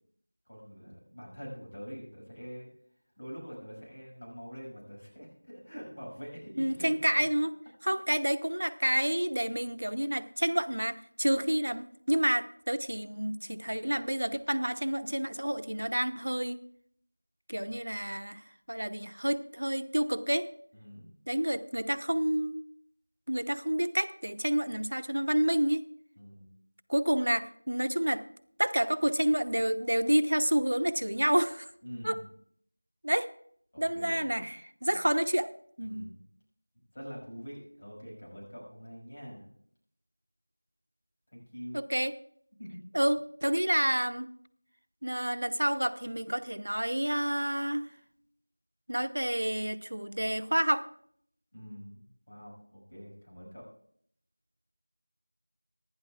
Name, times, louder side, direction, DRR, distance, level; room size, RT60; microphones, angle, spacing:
voice 1, 0.5-2.7 3.2-7.1 7.8-7.9 20.7-21.1 26.2-26.5 31.8-32.2 33.7-34.3 34.9-35.0 35.8-36.2 36.9-39.5 41.3-41.8 42.6-42.8 51.5-53.7, equal, 25° left, -4 dB, 6.1 m, -45 dB
voice 2, 6.6-7.5 7.8-16.6 17.5-20.5 21.3-22.6 23.3-25.8 26.9-28.2 28.6-31.7 32.0-32.2 33.0-33.3 33.8-35.5 35.8-36.1 41.7-42.1 42.9-44.3 45.0-47.9 48.9-50.9, right 1 dB, 90° right, 10 dB, 0.9 m, -29 dB
25.0 x 11.5 x 2.4 m, 0.65 s
figure-of-eight pair, 180°, 0 cm